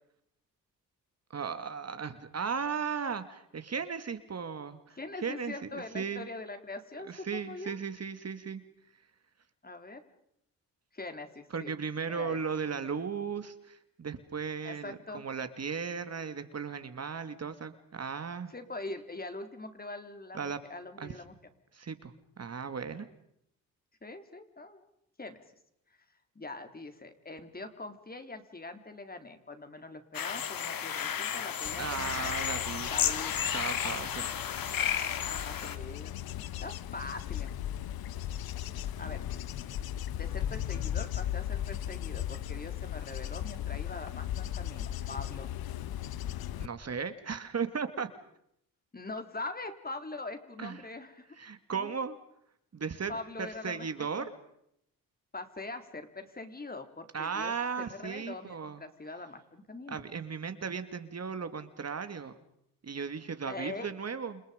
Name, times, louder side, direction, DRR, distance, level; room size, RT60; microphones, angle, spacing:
voice 1, 1.3-6.3 7.0-8.6 11.5-18.5 20.3-20.6 21.0-21.1 21.7-23.1 31.8-32.9 33.5-34.3 46.6-48.1 50.6-50.9 51.4-52.2 52.7-53.1 53.4-54.3 57.1-58.8 59.9-62.4 62.8-64.4, right 6 dB, 45° right, 10 dB, 2.5 m, -36 dB
voice 2, 5.0-7.8 9.6-10.0 10.9-11.7 12.1-12.4 14.6-15.2 18.5-21.3 24.0-24.9 25.2-25.4 26.4-32.4 32.9-33.3 34.2-34.5 35.2-36.1 36.6-37.5 39.0-39.2 40.1-45.5 48.9-51.3 51.7-51.9 53.1-54.3 55.3-60.0 63.5-63.9, left 2 dB, 25° left, 7 dB, 4.0 m, -43 dB
sound 1, 30.1-35.8, left 9 dB, 70° left, 2.5 m, -32 dB
Bird / Insect / Wind, 31.6-46.7, left 11 dB, 85° left, 1.3 m, -37 dB
30.0 x 28.5 x 5.3 m, 0.75 s
cardioid pair, 75°, 36 cm